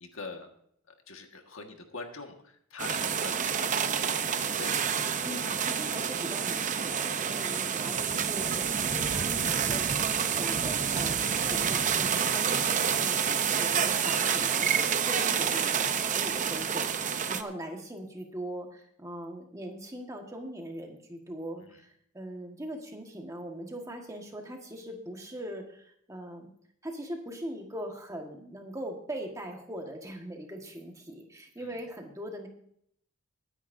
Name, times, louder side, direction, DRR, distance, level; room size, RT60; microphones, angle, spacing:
voice 1, 0.0-0.5 0.9-4.9 21.6-21.8 31.6-31.8, left 4 dB, 70° left, 4 dB, 1.6 m, -44 dB
sound 1, 2.8-17.4, right 7 dB, 35° right, 0.6 m, -28 dB
voice 2, 5.2-10.0 10.3-26.5 26.8-32.5, right 1 dB, 15° right, 2 dB, 1.5 m, -41 dB
21.5 x 10.0 x 2.6 m, 0.67 s
head